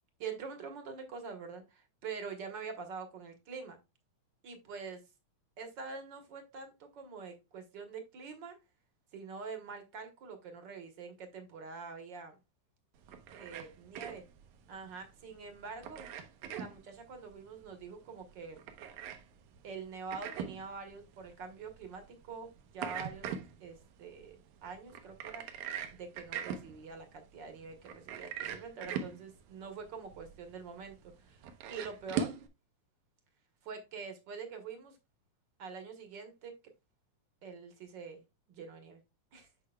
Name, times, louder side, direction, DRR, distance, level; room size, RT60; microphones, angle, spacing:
voice 1, 0.2-3.8 4.4-5.0 5.6-8.6 9.1-12.4 13.3-14.2 14.7-16.0 16.5-18.6 19.6-23.3 23.6-25.5 25.9-32.4 33.6-35.0 35.6-36.5 37.4-38.2 38.5-39.0 39.3-39.5, right 5 dB, 50° right, 6 dB, 1.4 m, -45 dB
sound 1, 13.0-32.5, right 7 dB, 80° right, 2.1 m, -43 dB
8.3 x 5.9 x 2.3 m, 0.23 s
omnidirectional pair, 3.5 m